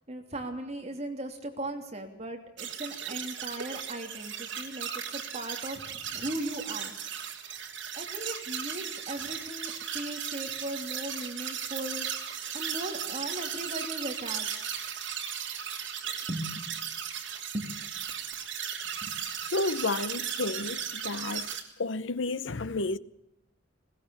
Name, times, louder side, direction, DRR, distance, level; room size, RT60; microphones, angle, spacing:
voice 1, 0.0-6.9 8.0-12.1 12.5-14.6 16.3-16.7 17.5-17.7 19.0-19.2, right 1 dB, 35° right, 3.1 m, -38 dB
sound 1, 2.6-21.6, right 8 dB, 65° right, 3.2 m, -36 dB
voice 2, 19.5-21.5 21.8-23.0, left 3 dB, 70° left, 0.8 m, -31 dB
20.5 x 19.0 x 7.1 m
head